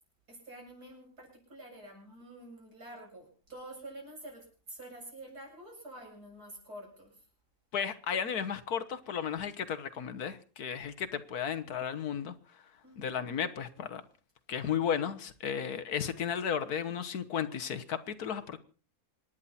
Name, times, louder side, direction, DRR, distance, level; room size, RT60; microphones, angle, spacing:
voice 1, 0.3-7.1 11.6-11.7 12.8-13.2, right 1 dB, 80° right, 8.2 m, -48 dB
voice 2, 7.7-12.3 13.0-14.0 14.5-18.6, left 8 dB, 75° left, 1.7 m, -34 dB
26.5 x 10.5 x 4.3 m
omnidirectional pair, 1.6 m